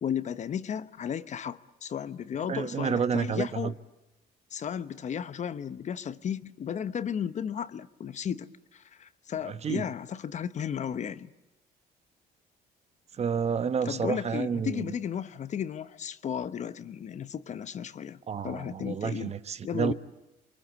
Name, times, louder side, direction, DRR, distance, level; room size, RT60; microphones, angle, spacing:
voice 1, 0.0-3.7 4.5-11.3 13.8-18.2 18.4-19.3 19.6-19.9, left 8 dB, 45° left, 1.0 m, -34 dB
voice 2, 2.5-3.7 9.4-9.8 13.1-14.9 18.3-19.9, right 6 dB, 40° right, 1.1 m, -30 dB
28.5 x 23.5 x 8.2 m
cardioid pair, 110°, 17 cm